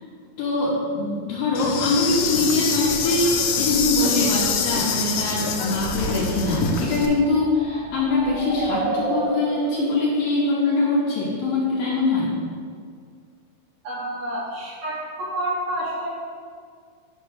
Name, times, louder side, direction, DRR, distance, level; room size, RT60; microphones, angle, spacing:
voice 1, 0.4-12.3, left 2 dB, 75° left, -7 dB, 2.4 m, -23 dB
Insect, 1.6-7.1, left 5 dB, 90° left, 2.8 m, -25 dB
sound 1, 5.6-11.4, right 2 dB, 60° right, 2.6 m, -32 dB
voice 2, 13.8-16.1, right 1 dB, 80° right, -7 dB, 1.6 m, -29 dB
8.1 x 3.0 x 6.3 m, 2.1 s
omnidirectional pair, 4.8 m